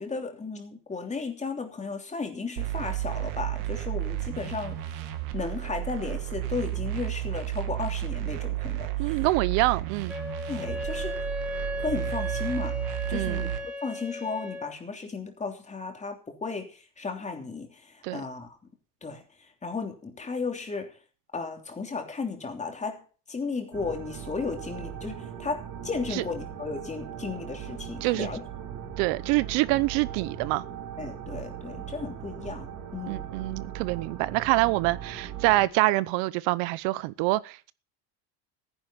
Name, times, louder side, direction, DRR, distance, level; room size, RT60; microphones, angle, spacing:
voice 1, 0.0-5.0 5.3-9.2 10.5-11.2 11.8-12.8 13.1-18.6 19.0-19.2 19.6-21.0 21.3-23.0 23.3-28.4 31.0-33.3, left 4 dB, 15° left, 3.1 m, -34 dB
sound 1, 2.6-13.6, right 14 dB, 90° right, 2.5 m, -32 dB
voice 2, 9.0-10.1 13.1-13.4 18.0-18.2 26.1-26.2 28.0-28.3 29.0-30.6 33.1-37.7, right 20 dB, 70° right, 0.9 m, -26 dB
Wind instrument woodwind instrument, 10.1-14.7, left 2 dB, 5° right, 2.0 m, -35 dB
sound 2, 23.7-35.7, right 8 dB, 40° right, 2.7 m, -39 dB
14.5 x 10.5 x 5.8 m
cardioid pair, 150°, 44 cm